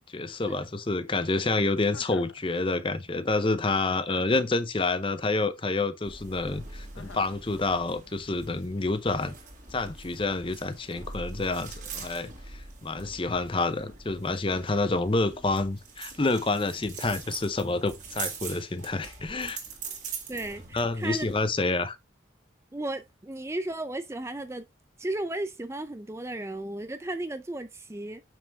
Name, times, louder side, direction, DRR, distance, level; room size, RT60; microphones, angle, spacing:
voice 1, 0.1-9.3 9.7-19.6 20.7-22.0, left 3 dB, 25° left, 0.6 m, -28 dB
Chuckle chortle, 1.9-2.4 4.1-4.6 6.9-7.4, left 4 dB, 85° left, 0.8 m, -47 dB
sound 1, 6.0-21.6, right 5 dB, 40° right, 2.2 m, -43 dB
voice 2, 20.3-21.3 22.7-24.7 25.0-28.2, right 2 dB, 15° right, 0.4 m, -34 dB
7.2 x 6.1 x 3.5 m
head